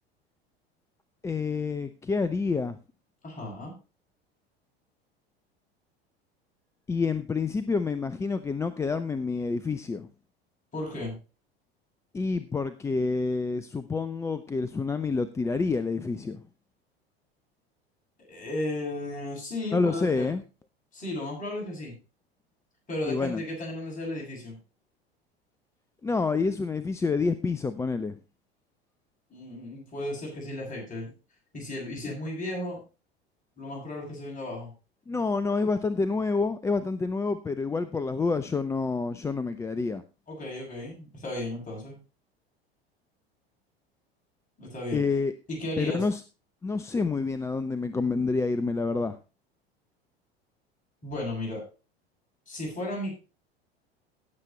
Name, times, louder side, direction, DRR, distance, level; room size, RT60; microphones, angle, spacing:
voice 1, 1.2-2.8 6.9-10.1 12.1-16.4 19.7-20.4 23.0-23.4 26.0-28.2 32.0-32.1 35.1-40.0 44.9-45.3 45.8-46.2 46.6-49.2, left 4 dB, 10° left, 14 dB, 0.4 m, -28 dB
voice 2, 3.2-3.7 10.7-11.2 18.3-20.3 20.9-21.9 22.9-24.6 29.3-31.1 31.5-32.8 33.6-34.7 40.3-42.0 44.6-45.0 45.5-46.0 51.0-51.6 52.5-53.1, left 1 dB, 25° left, -1 dB, 7.4 m, -34 dB
17.0 x 7.3 x 3.1 m, 0.31 s
figure-of-eight pair, 75°, 31 cm